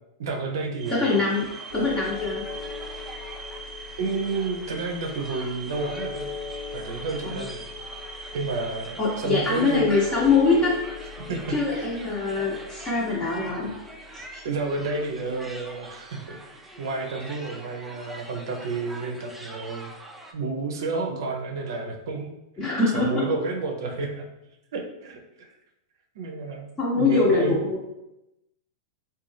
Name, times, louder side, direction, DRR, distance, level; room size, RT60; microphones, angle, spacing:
voice 1, 0.2-1.2 4.0-6.3 6.7-7.6 8.3-9.9 11.3-11.4 11.8-11.9 14.4-16.4 16.8-19.9 20.3-22.3 22.9-24.2 24.7-25.5 26.2-26.7 27.0-27.6, right 3 dB, 70° right, 2 dB, 0.5 m, -30 dB
sound 1, 0.8-20.3, right 1 dB, 5° right, 0.3 m, -44 dB
sound 2, 0.8-15.7, right 4 dB, 25° right, 0.7 m, -44 dB
voice 2, 0.9-1.5 1.7-2.4 7.2-7.5 9.0-10.7 11.5-13.7 14.1-14.4 22.6-23.2 26.8-27.8, left 4 dB, 25° left, -5 dB, 0.7 m, -23 dB
sound 3, 1.7-15.9, left 5 dB, 55° left, 1.1 m, -40 dB
2.5 x 2.2 x 3.2 m, 0.90 s
hypercardioid pair, 110°, 2 cm